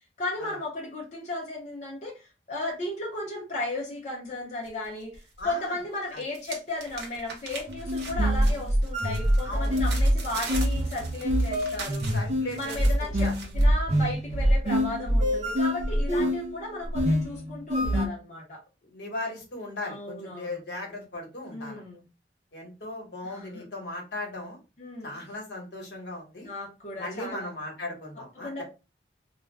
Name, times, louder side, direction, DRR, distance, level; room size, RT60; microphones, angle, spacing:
voice 1, 0.2-12.0 12.6-18.6 19.8-20.6 21.5-22.0 23.2-23.7 24.8-25.1 26.4-27.5 28.4-28.6, left 2 dB, 40° left, -3 dB, 0.7 m, -35 dB
sound 1, 4.6-5.5 5.8-13.6, right 3 dB, 70° right, 0.9 m, -41 dB
voice 2, 5.4-5.8 6.1-6.2 9.4-9.8 12.1-13.3 16.1-16.3 18.8-21.8 22.5-24.6 25.0-26.5 27.0-28.6, left 2 dB, 70° left, 0 dB, 1.0 m, -37 dB
sound 2, 7.7-18.1, equal, 40° right, 0.5 m, -25 dB
2.4 x 2.1 x 3.3 m, 0.30 s
head